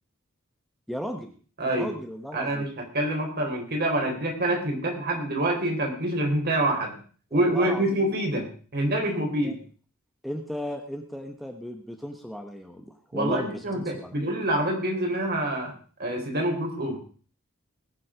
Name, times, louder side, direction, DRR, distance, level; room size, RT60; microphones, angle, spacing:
voice 1, 0.9-1.3 1.6-2.7 7.3-8.1 9.2-9.5 10.2-14.1, equal, ahead, 4 dB, 1.1 m, -36 dB
voice 2, 1.6-1.9 2.3-7.0 7.3-8.5 8.7-9.6 13.1-15.7 16.0-17.0, right 1 dB, 50° right, 2 dB, 4.0 m, -26 dB
20.0 x 7.6 x 5.0 m, 0.42 s
head